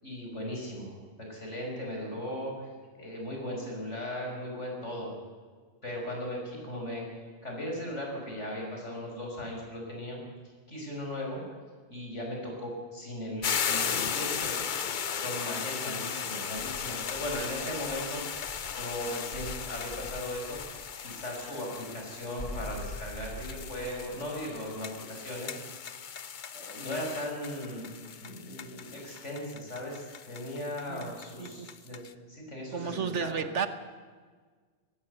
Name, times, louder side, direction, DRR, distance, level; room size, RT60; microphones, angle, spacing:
voice 1, 0.0-2.7 3.0-5.1 5.8-10.2 10.7-11.6 11.9-14.6 15.1-18.2 18.7-25.6 25.8-25.9 26.5-33.5, left 1 dB, 75° left, 0 dB, 5.9 m, -38 dB
sound 1, 13.4-32.1, left 7 dB, 45° left, 0.8 m, -37 dB
Insect, 16.6-18.8 19.3-20.7 22.4-24.0, left 1 dB, 5° left, 7.6 m, -43 dB
voice 2, 32.7-33.7, right 6 dB, 70° right, 10 dB, 1.5 m, -32 dB
20.0 x 16.0 x 8.0 m, 1.5 s
omnidirectional pair, 1.2 m